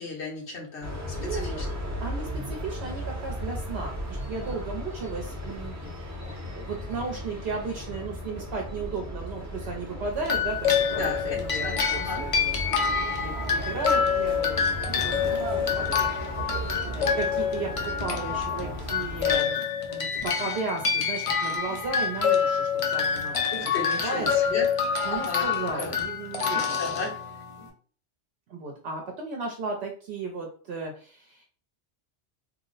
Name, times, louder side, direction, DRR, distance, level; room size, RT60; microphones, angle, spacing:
voice 1, 0.0-1.5 10.9-12.2 23.5-24.7 25.1-25.5 25.8-26.0 26.7-27.2, left 4 dB, 80° left, -1 dB, 1.2 m, -35 dB
sound 1, 0.8-19.4, equal, 20° right, 0.5 m, -36 dB
voice 2, 1.2-1.6 2.0-16.0 16.3-19.6 19.9-24.3 25.0-27.1 28.5-31.4, right 3 dB, 70° right, 1 dB, 0.8 m, -35 dB
sound 2, 10.2-27.6, left 6 dB, 45° left, 0.4 m, -27 dB
2.8 x 2.0 x 3.8 m, 0.42 s
omnidirectional pair, 1.1 m